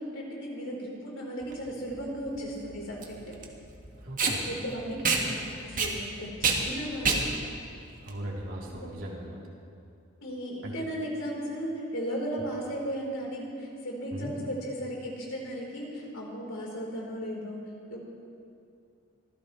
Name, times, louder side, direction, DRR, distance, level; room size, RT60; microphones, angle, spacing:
voice 1, 0.0-3.4 4.5-7.3 8.6-8.9 10.2-17.6 17.9-18.0, equal, 75° left, -3 dB, 4.0 m, -36 dB
Packing tape duct tape, 1.4-8.9, right 4 dB, 40° right, 1.6 m, -30 dB
voice 2, 4.0-4.5 8.0-9.4 10.6-10.7 14.1-14.3, right 1 dB, 85° right, -4 dB, 3.2 m, -38 dB
24.5 x 15.5 x 3.2 m, 2.6 s
head